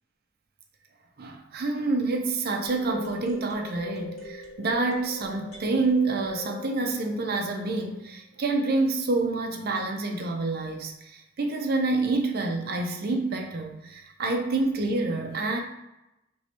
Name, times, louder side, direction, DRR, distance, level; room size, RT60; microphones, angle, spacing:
voice 1, 1.2-15.6, right 3 dB, 50° right, 3 dB, 0.6 m, -27 dB
sound 1, 2.6-7.7, left 2 dB, 35° left, 1.5 m, -40 dB
4.6 x 3.0 x 2.9 m, 0.92 s
head